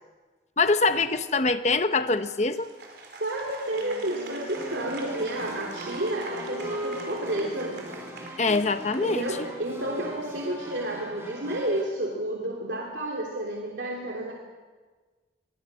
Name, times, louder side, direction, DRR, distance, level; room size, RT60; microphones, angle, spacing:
voice 1, 0.6-2.7 8.4-9.4, left 3 dB, 40° left, 10 dB, 1.0 m, -24 dB
Applause, 2.2-9.7, right 3 dB, 65° right, 4.5 m, -45 dB
voice 2, 3.2-7.8 9.0-14.3, right 1 dB, 85° right, -1 dB, 3.1 m, -31 dB
Wind instrument woodwind instrument, 3.6-10.3, right 1 dB, 50° right, 5.0 m, -40 dB
sound 1, 4.5-11.8, equal, 15° right, 3.9 m, -42 dB
23.5 x 22.5 x 6.4 m, 1.4 s
head